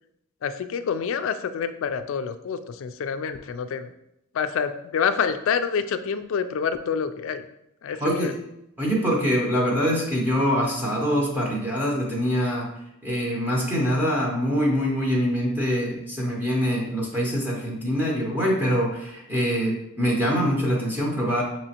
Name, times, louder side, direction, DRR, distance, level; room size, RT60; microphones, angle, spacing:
voice 1, 0.4-3.9 4.3-7.4 7.8-8.3, left 6 dB, 65° left, 10 dB, 0.3 m, -27 dB
voice 2, 7.9-8.3 8.8-12.7 13.0-21.4, equal, 10° right, -4 dB, 0.8 m, -24 dB
6.0 x 3.0 x 2.9 m, 0.81 s
head